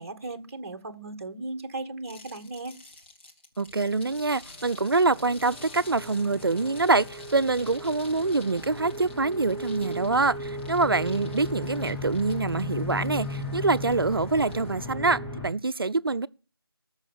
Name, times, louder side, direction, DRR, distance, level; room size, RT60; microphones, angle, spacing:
voice 1, 0.0-2.8, right 2 dB, 35° right, 1.4 m, -37 dB
sound 1, 2.1-14.7, left 2 dB, 25° left, 1.8 m, -50 dB
voice 2, 3.6-16.3, right 3 dB, 65° right, 0.6 m, -25 dB
sound 2, 4.6-15.5, left 1 dB, 5° left, 0.7 m, -36 dB
14.0 x 6.4 x 6.9 m
figure-of-eight pair, 165°, 13 cm